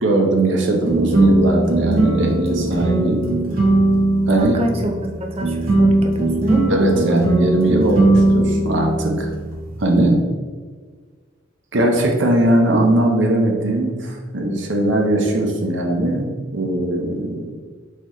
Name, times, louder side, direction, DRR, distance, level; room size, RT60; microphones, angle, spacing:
voice 1, 0.0-3.2 4.3-4.6 6.7-9.3 9.8-10.2 11.7-17.5, right 1 dB, 65° right, 1 dB, 0.8 m, -19 dB
sound 1, 0.8-10.1, right 2 dB, 45° right, 1.3 m, -19 dB
voice 2, 4.4-4.9 5.2-6.7, right 2 dB, 30° right, 2 dB, 0.5 m, -26 dB
4.2 x 4.0 x 3.1 m, 1.5 s
head